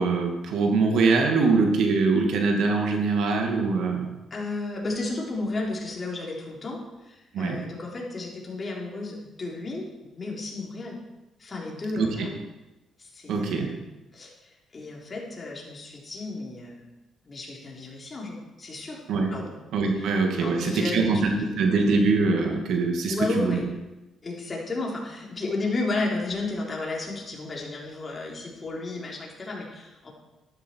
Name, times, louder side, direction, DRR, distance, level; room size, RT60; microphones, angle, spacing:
voice 1, 0.0-4.1 7.3-7.6 12.0-12.3 13.3-13.7 19.1-19.3 19.7-23.6, right 4 dB, 80° right, 2 dB, 2.3 m, -23 dB
voice 2, 4.3-9.9 10.2-11.0 11.4-12.3 13.0-13.8 14.1-14.3 14.7-16.8 17.3-19.0 19.3-19.5 20.0-20.1 20.4-21.0 21.3-21.7 23.1-23.7 24.2-30.1, left 2 dB, 35° left, -2 dB, 3.9 m, -33 dB
13.0 x 12.0 x 4.7 m, 1.0 s
cardioid pair, 90°, 0 cm